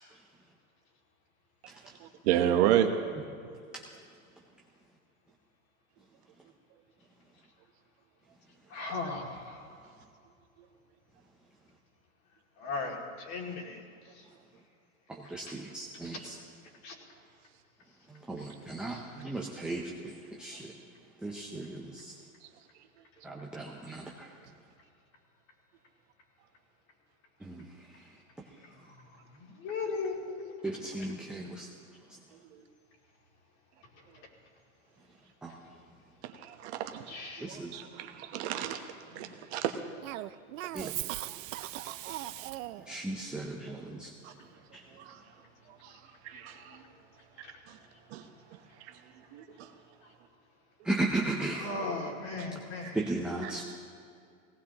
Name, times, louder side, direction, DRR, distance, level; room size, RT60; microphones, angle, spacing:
voice 1, 2.0-2.9 19.2-19.3 36.2-37.0 37.4-38.8 39.1-39.7 41.8-42.0 44.2-44.3 45.0-45.2 45.8-45.9 46.2-46.8 48.1-48.2 49.3-49.7 52.4-52.5 52.8-52.9 53.4-53.5, right 11 dB, 50° right, 6 dB, 1.1 m, -31 dB
voice 2, 8.7-9.7 12.6-13.8 15.5-15.6 16.8-16.9 29.4-30.8 37.1-37.5 46.3-46.4 47.4-47.5 51.5-53.0, left 3 dB, 40° left, 0 dB, 2.5 m, -37 dB
voice 3, 15.1-16.4 18.1-20.7 21.2-22.2 23.2-24.3 27.4-28.1 30.6-31.7 35.4-35.6 37.4-37.8 40.7-40.9 42.9-44.1 44.7-44.8 50.8-51.7 52.5-52.6 52.9-53.6, right 2 dB, ahead, -1 dB, 0.5 m, -36 dB
Cough, 40.0-43.0, right 15 dB, 70° right, 0.5 m, -38 dB
17.5 x 17.5 x 2.9 m, 2.3 s
hypercardioid pair, 135°, 41 cm